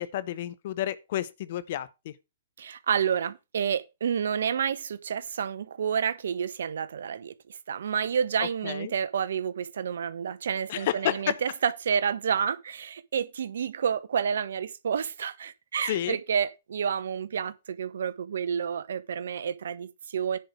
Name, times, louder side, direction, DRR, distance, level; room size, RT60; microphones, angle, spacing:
voice 1, 0.0-2.1 8.4-8.9 10.7-11.4 15.9-16.2, left 12 dB, 55° left, 1.0 m, -31 dB
voice 2, 2.6-20.4, right 7 dB, 65° right, 0.8 m, -29 dB
10.0 x 5.0 x 6.0 m
figure-of-eight pair, 115°, 0 cm